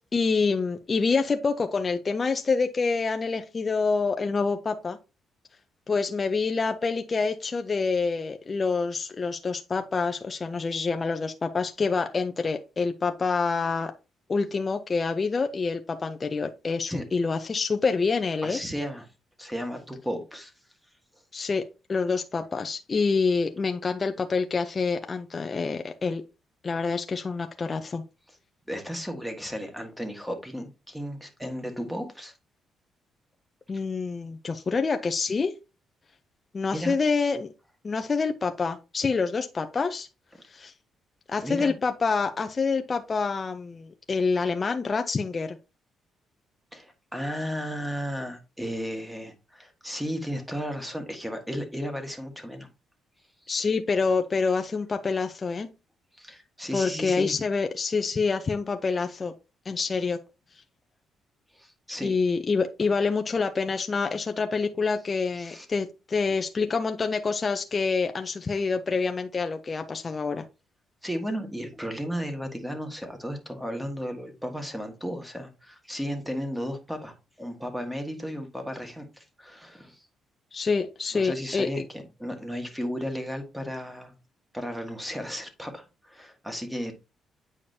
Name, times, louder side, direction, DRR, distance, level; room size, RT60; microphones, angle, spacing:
voice 1, 0.1-5.0 5.9-13.9 14.3-18.6 21.3-26.2 26.6-28.0 33.7-35.6 36.5-37.5 37.8-40.1 40.5-40.7 41.3-45.6 53.5-55.7 56.7-59.3 59.7-60.2 62.0-70.4 80.5-81.7, left 4 dB, 35° left, 6 dB, 0.6 m, -27 dB
voice 2, 18.4-19.1 19.4-20.5 28.3-28.4 28.7-32.4 36.7-37.0 41.4-41.7 46.7-52.7 56.1-57.4 61.5-62.2 65.4-65.7 71.0-80.0 81.1-84.1 84.5-86.9, equal, 5° right, 5 dB, 1.6 m, -34 dB
8.5 x 5.0 x 2.7 m, 0.29 s
cardioid pair, 90°, 0 cm